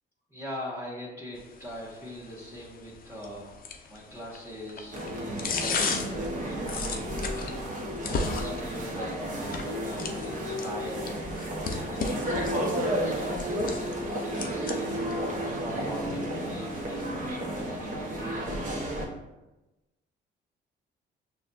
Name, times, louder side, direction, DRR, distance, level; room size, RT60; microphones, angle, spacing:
voice 1, 0.3-3.5 3.9-7.5 8.0-11.2 11.5-15.2 15.5-18.8, equal, 10° right, -10 dB, 1.4 m, -41 dB
sound 1, 1.4-17.3, left 4 dB, 45° left, 0.5 m, -38 dB
sound 2, 4.9-19.1, equal, 40° right, 1.0 m, -32 dB
6.1 x 2.3 x 2.6 m, 1.0 s
cardioid pair, 90°, 20 cm